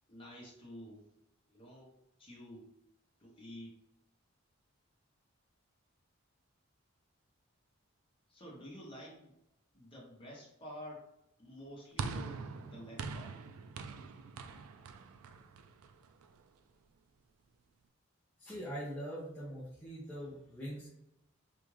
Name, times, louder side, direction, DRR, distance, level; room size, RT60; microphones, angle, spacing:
voice 1, 0.1-1.1 1.5-2.7 3.2-3.8 8.3-9.3 9.7-11.1 11.4-13.4, equal, 25° left, -4 dB, 1.0 m, -50 dB
sound 1, 12.0-16.4, right 4 dB, 80° right, 0.3 m, -43 dB
voice 2, 18.4-20.9, equal, 5° left, -9 dB, 0.6 m, -42 dB
3.5 x 2.6 x 3.1 m, 0.87 s
head